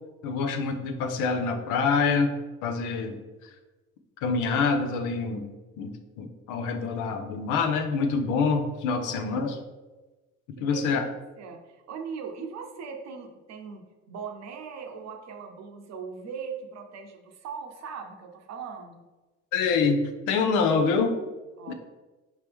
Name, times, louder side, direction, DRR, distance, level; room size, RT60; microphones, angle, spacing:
voice 1, 0.2-2.4 2.6-3.5 4.2-5.5 5.8-9.6 10.6-11.1 19.5-21.2 21.7-21.8, left 4 dB, 75° left, 6 dB, 0.6 m, -26 dB
voice 2, 10.6-13.8 14.1-19.0 21.6-21.7, right 6 dB, 55° right, 4 dB, 0.7 m, -40 dB
4.5 x 3.0 x 3.4 m, 1.2 s
supercardioid pair, 80°, 31 cm